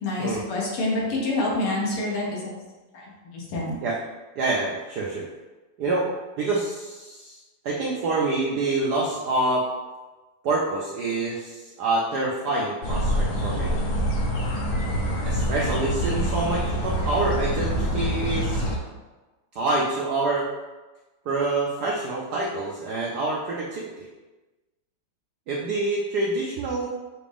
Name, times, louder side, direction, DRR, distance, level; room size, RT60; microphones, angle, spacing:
voice 1, 0.0-2.6 2.9-3.8, left 2 dB, 85° left, -4 dB, 2.1 m, -27 dB
voice 2, 4.4-5.3 5.8-6.1 6.4-7.4 7.6-9.7 10.4-13.8 15.2-18.6 19.5-20.5 21.3-23.9 25.5-26.9, right 2 dB, 80° right, -3 dB, 0.9 m, -26 dB
sound 1, 12.8-18.8, equal, 65° left, 1.1 m, -25 dB
5.9 x 2.5 x 3.4 m, 1.2 s
omnidirectional pair, 2.4 m